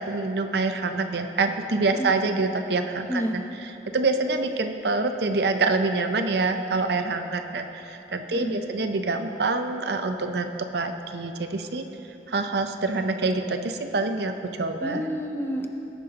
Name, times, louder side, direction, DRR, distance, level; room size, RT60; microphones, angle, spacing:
voice 1, 0.0-3.4 3.9-11.9 12.3-15.0, right 3 dB, 65° right, 7 dB, 0.6 m, -26 dB
voice 2, 14.8-15.7, equal, 15° left, 3 dB, 0.6 m, -29 dB
18.0 x 10.5 x 2.9 m, 3.0 s
head